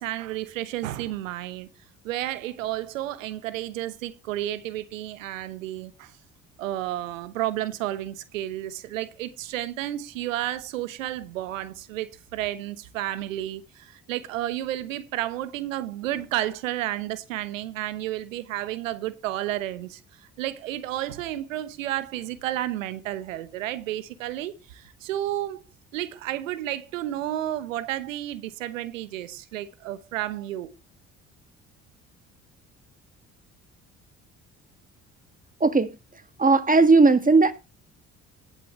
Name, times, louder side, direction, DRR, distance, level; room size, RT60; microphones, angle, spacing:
voice 1, 0.0-1.7 2.0-6.1 6.6-25.6 25.9-30.7, right 13 dB, 85° right, 1.0 m, -31 dB
voice 2, 36.4-37.5, right 3 dB, 20° right, 1.8 m, -17 dB
18.0 x 7.9 x 3.1 m
hypercardioid pair, 50°, 38 cm